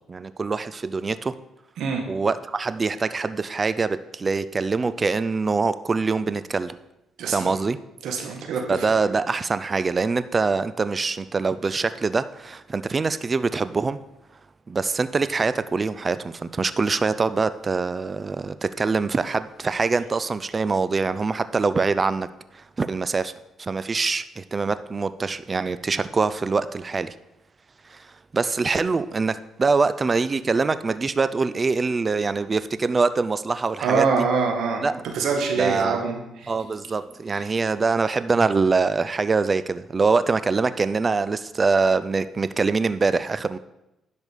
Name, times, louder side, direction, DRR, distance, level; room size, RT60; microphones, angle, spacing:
voice 1, 0.0-1.3 2.1-6.8 7.3-7.8 8.7-14.0 14.7-22.3 22.5-23.3 23.6-27.1 27.8-34.2 34.8-35.0 35.6-36.1 36.5-43.6, right 4 dB, 30° right, 14 dB, 0.5 m, -24 dB
voice 2, 7.2-7.5 8.0-8.9 33.8-36.5, right 5 dB, 75° right, 3 dB, 2.0 m, -24 dB
11.0 x 5.3 x 6.7 m, 0.91 s
cardioid pair, 90°, 0 cm